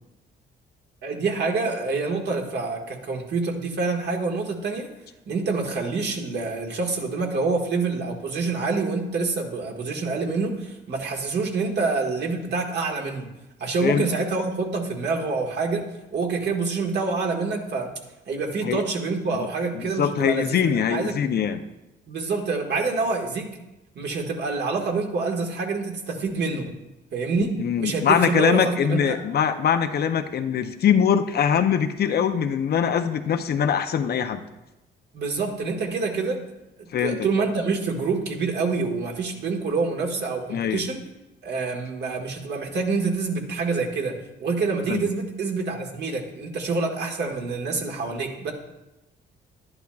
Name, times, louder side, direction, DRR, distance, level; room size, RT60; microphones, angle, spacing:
voice 1, 1.0-4.9 5.3-13.3 13.6-17.9 18.3-21.2 22.1-23.5 23.9-26.8 27.1-29.2 35.1-36.4 36.8-41.0 41.4-48.5, right 4 dB, 60° right, 1 dB, 1.6 m, -27 dB
voice 2, 19.7-21.6 27.6-34.4 36.9-37.2 40.5-40.8 44.9-45.1, left 8 dB, 55° left, 8 dB, 0.6 m, -22 dB
11.5 x 10.5 x 2.3 m, 0.99 s
cardioid pair, 90°, 20 cm